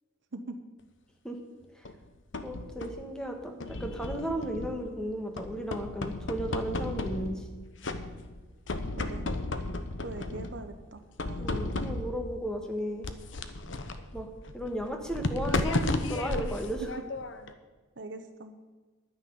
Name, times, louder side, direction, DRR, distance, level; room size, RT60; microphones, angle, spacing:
sound 1, 1.9-3.1 3.6-5.0 5.4-7.5 7.8-8.4 8.7-10.6 11.2-12.3 13.0-17.5, left 2 dB, 70° left, 0.9 m, -34 dB
voice 1, 2.4-7.5 11.3-13.1 14.1-14.3 14.5-17.0, right 1 dB, 5° left, 3 dB, 1.5 m, -35 dB
voice 2, 9.0-9.3 10.0-11.0 11.3-11.7 18.0-18.5, right 2 dB, 60° right, 8 dB, 0.9 m, -42 dB
11.0 x 9.7 x 6.9 m, 1.3 s
head